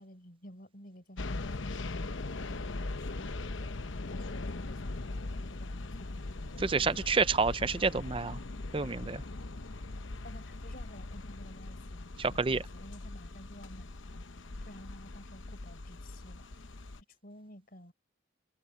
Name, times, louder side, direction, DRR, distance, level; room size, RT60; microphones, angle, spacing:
voice 1, 0.0-3.7 4.1-6.9 8.8-9.7 10.2-11.8 12.3-14.3 14.6-16.5 17.2-17.9, equal, 45° left, 5.0 m, -52 dB
sound 1, 1.2-17.0, left 2 dB, 80° left, 0.9 m, -40 dB
voice 2, 6.6-8.4 8.7-9.2 12.2-12.6, right 4 dB, 25° right, 0.5 m, -29 dB
head